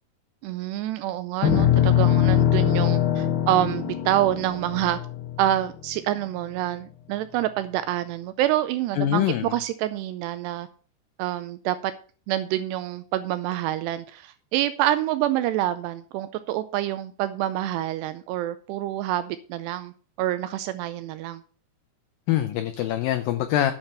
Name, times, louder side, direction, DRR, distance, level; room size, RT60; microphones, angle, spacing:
voice 1, 0.4-5.0 5.4-10.7 11.2-11.9 12.3-19.9 20.2-21.4, right 13 dB, 80° right, 12 dB, 2.6 m, -27 dB
sound 1, 1.4-5.9, left 10 dB, 70° left, 2.5 m, -22 dB
voice 2, 9.0-9.5 22.3-23.7, left 12 dB, 90° left, 9 dB, 2.0 m, -24 dB
9.0 x 6.8 x 6.6 m, 0.40 s
omnidirectional pair, 5.0 m